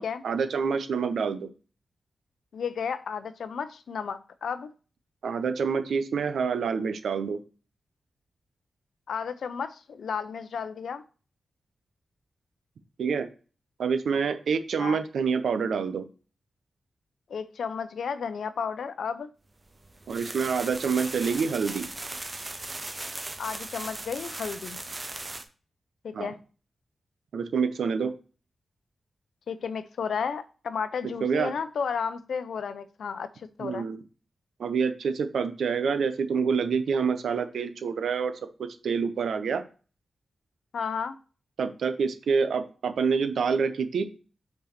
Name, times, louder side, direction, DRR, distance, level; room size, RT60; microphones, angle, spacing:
voice 1, 0.0-1.5 5.2-7.4 13.0-13.3 13.8-16.1 20.1-21.9 26.1-26.3 27.3-28.1 31.2-31.5 33.6-34.0 34.6-39.6 41.6-44.0, right 5 dB, 90° right, 0.8 m, -27 dB
voice 2, 2.5-4.7 9.1-11.0 14.8-15.0 17.3-19.3 23.4-24.8 26.0-26.4 29.5-33.9 40.7-41.2, left 6 dB, 80° left, 0.6 m, -33 dB
sound 1, 19.7-25.4, right 2 dB, 25° right, 0.7 m, -38 dB
5.7 x 4.6 x 5.8 m
wide cardioid pair, 125°, 0 cm